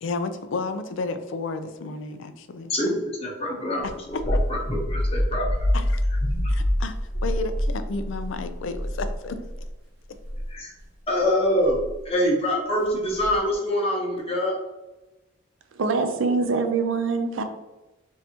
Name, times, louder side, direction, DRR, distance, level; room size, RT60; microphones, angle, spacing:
voice 1, 0.0-3.0 3.8-4.4 5.7-6.0 6.5-7.0 7.2-9.4, left 3 dB, 65° left, 10 dB, 0.4 m, -32 dB
voice 2, 2.7-4.4 4.7-5.7 6.3-6.4 10.5-10.7 11.1-11.8 12.0-14.6, equal, 30° left, -2 dB, 0.8 m, -25 dB
sound 1, 3.8-9.7 10.1-10.5 11.6-11.9 13.1-13.5, equal, 50° right, 1.3 m, -26 dB
voice 3, 15.7-17.4, right 4 dB, 75° right, 6 dB, 0.5 m, -24 dB
3.3 x 2.6 x 2.8 m, 1.1 s
head